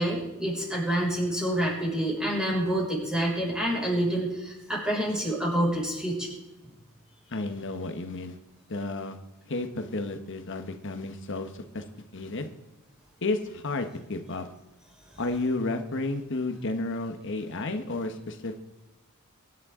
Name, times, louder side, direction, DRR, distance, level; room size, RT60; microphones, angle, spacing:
voice 1, 0.0-6.3, right 1 dB, 5° right, -4 dB, 5.9 m, -27 dB
voice 2, 7.3-8.4 8.7-9.2 9.5-11.9 12.1-12.5 13.2-14.5 15.2-18.6, left 2 dB, 60° left, 7 dB, 1.2 m, -32 dB
23.0 x 11.0 x 3.8 m, 1.0 s
head